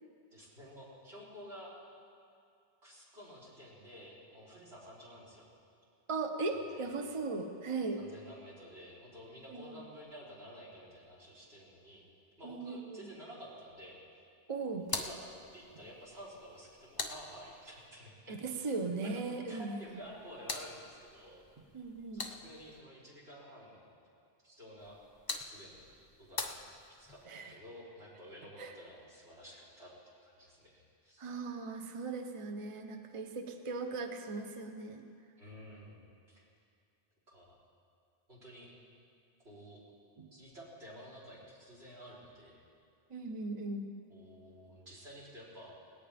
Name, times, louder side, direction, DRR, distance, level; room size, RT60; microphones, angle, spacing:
voice 1, 0.3-1.7 2.8-5.5 6.5-6.9 8.0-12.1 12.4-14.2 14.9-18.4 19.0-19.1 19.5-21.4 22.1-23.9 24.4-25.0 25.4-25.8 26.2-29.9 30.2-31.3 35.4-36.5 37.3-37.6 38.3-38.7 39.4-39.8 40.3-42.7 44.1-45.7, equal, 75° right, -7 dB, 4.1 m, -52 dB
voice 2, 6.1-8.0 9.5-9.8 12.4-13.1 14.5-14.9 18.3-19.7 21.7-22.3 27.2-27.5 28.6-28.7 31.2-35.0 40.2-40.3 43.1-43.9, right 3 dB, 35° right, 5 dB, 0.8 m, -38 dB
sound 1, 14.8-17.9 19.9-22.8 24.8-27.2, left 3 dB, 25° left, 0.7 m, -44 dB
18.5 x 17.5 x 3.4 m, 2.4 s
omnidirectional pair, 1.1 m